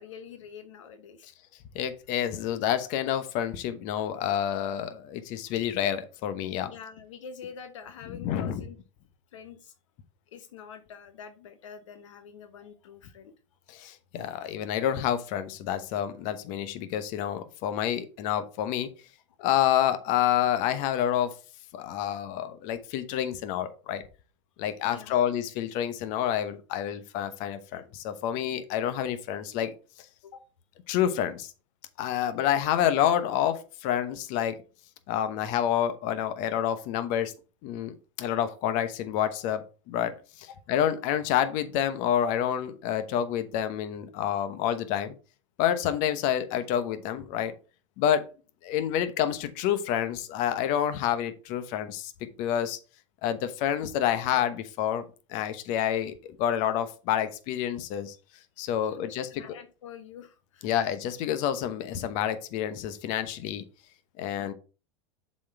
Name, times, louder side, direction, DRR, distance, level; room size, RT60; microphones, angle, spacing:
voice 1, 0.0-1.3 6.7-8.8 9.3-9.7 10.3-13.3 24.8-25.2 30.2-30.4 40.5-40.6 58.8-60.7 64.4-64.5, left 7 dB, 80° left, 9 dB, 0.9 m, -46 dB
voice 2, 1.7-6.7 8.2-8.6 13.7-18.9 19.4-21.3 21.7-24.0 24.6-29.7 30.9-31.5 32.0-34.6 35.1-37.3 37.6-45.1 45.6-47.5 48.0-48.3 48.6-52.1 52.4-52.8 53.2-55.0 55.3-58.2 58.6-59.3 60.6-63.6 64.2-64.5, left 10 dB, 55° left, 10 dB, 1.0 m, -28 dB
7.3 x 4.3 x 4.4 m, 0.34 s
hypercardioid pair, 95°, 16 cm